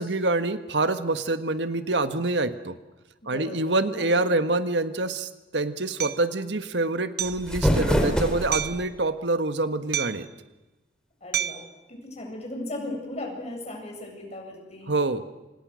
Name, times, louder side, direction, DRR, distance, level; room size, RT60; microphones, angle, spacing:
voice 1, 0.0-2.7 3.3-10.3 14.9-15.2, right 2 dB, 85° right, 10 dB, 1.6 m, -26 dB
voice 2, 3.2-4.5 11.2-14.9, left 1 dB, 40° left, 1 dB, 7.9 m, -37 dB
Hammer, 6.0-6.2 7.2-7.5 8.5-8.9 9.9-10.3 11.3-11.7, right 10 dB, 65° right, 0.9 m, -29 dB
sound 1, 7.2-8.8, equal, 5° left, 4.1 m, -24 dB
29.5 x 27.5 x 6.5 m, 1.1 s
head